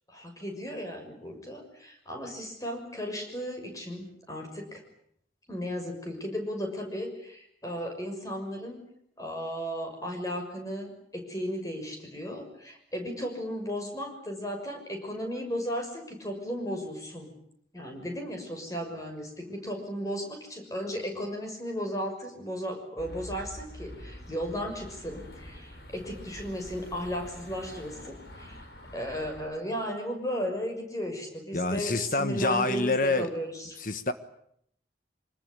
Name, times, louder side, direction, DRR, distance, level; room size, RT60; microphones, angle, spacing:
voice 1, 0.1-4.8 5.5-8.8 9.2-17.3 17.7-28.7 28.9-33.8, equal, 20° left, 6.4 m, -35 dB
sound 1, 23.0-29.5, equal, 65° left, 5.9 m, -46 dB
voice 2, 31.5-33.3 33.8-34.1, left 2 dB, 50° left, 1.4 m, -27 dB
25.0 x 20.5 x 9.7 m
head